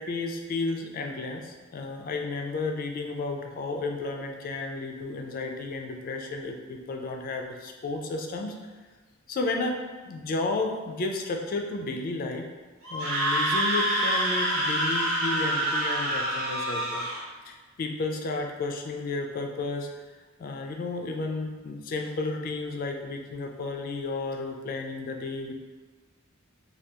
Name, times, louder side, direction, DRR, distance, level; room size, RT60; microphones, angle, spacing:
voice 1, 0.0-8.6 9.3-12.5 12.9-17.1 17.5-19.9 20.4-25.5, left 3 dB, 40° left, 3 dB, 0.3 m, -32 dB
Screaming, 12.8-17.2, right 1 dB, 80° right, 1.0 m, -26 dB
3.4 x 2.3 x 2.8 m, 1.4 s
head